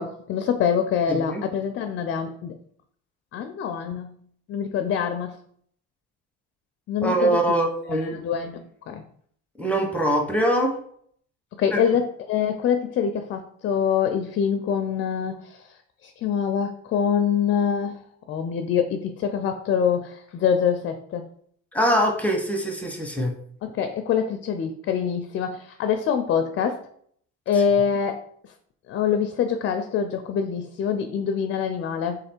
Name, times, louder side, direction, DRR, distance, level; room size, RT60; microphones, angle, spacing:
voice 1, 0.0-2.6 3.3-4.2 4.5-5.4 6.9-7.4 7.9-8.6 8.9-9.0 11.6-15.6 16.0-18.0 18.3-21.2 23.6-26.8 27.5-28.2 28.9-32.2, left 7 dB, 40° left, 7 dB, 0.4 m, -25 dB
voice 2, 1.1-1.4 7.0-8.2 9.6-10.8 11.7-11.8 21.7-23.3, right 1 dB, 5° left, 1 dB, 0.8 m, -23 dB
3.6 x 3.3 x 4.4 m, 0.64 s
cardioid pair, 115°, 30 cm